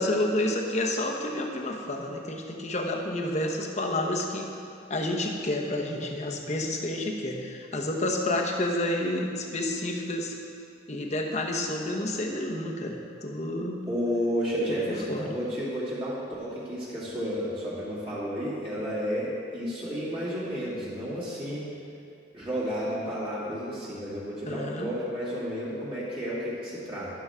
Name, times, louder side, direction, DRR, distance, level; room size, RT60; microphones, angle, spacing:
voice 1, 0.0-4.5 4.9-10.3 10.9-13.8 14.7-15.4 24.4-24.9, left 1 dB, 35° left, 1 dB, 1.1 m, -30 dB
voice 2, 13.9-21.7 22.3-27.1, equal, 30° right, -9 dB, 2.6 m, -32 dB
12.0 x 11.5 x 3.7 m, 2.6 s
head